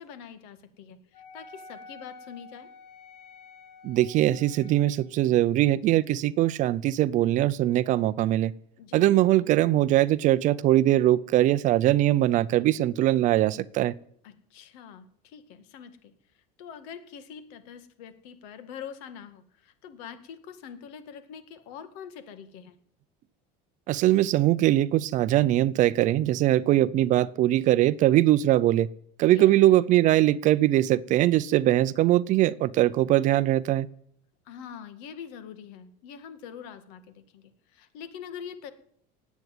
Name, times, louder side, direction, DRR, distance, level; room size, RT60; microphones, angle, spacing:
voice 1, 0.0-2.7 8.8-9.2 14.2-16.1 16.6-22.8 29.3-29.8 34.5-38.7, left 8 dB, 70° left, 2.0 m, -44 dB
Wind instrument woodwind instrument, 1.1-5.1, left 4 dB, 35° left, 2.4 m, -49 dB
voice 2, 3.8-8.5 8.9-13.9 23.9-28.9 29.2-33.9, right 14 dB, 40° right, 0.5 m, -21 dB
18.0 x 8.3 x 9.3 m
cardioid pair, 160°, 19 cm